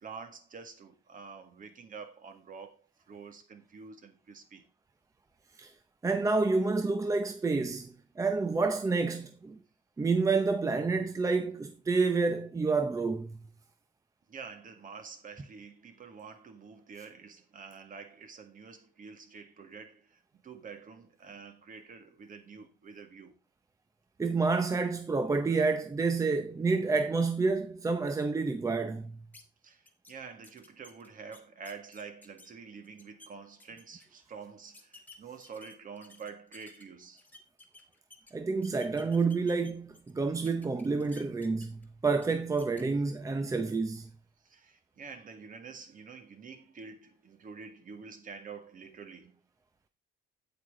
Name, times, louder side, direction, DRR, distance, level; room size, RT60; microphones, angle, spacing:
voice 1, 0.0-4.7 14.3-23.3 29.6-37.2 44.4-49.4, right 5 dB, 40° right, 1.8 m, -47 dB
voice 2, 6.0-9.6 10.0-13.4 24.2-29.2 38.3-44.1, right 4 dB, 15° right, 0.6 m, -29 dB
sound 1, 29.3-29.4 29.9-30.1 30.4-32.5 32.8-33.3 33.6-34.1 34.7-36.8 37.2-38.3 38.6-40.1 40.4-41.8 42.2-42.3 42.6-42.8, left 2 dB, 10° left, 1.6 m, -54 dB
8.8 x 8.6 x 3.7 m
cardioid pair, 155°, 20 cm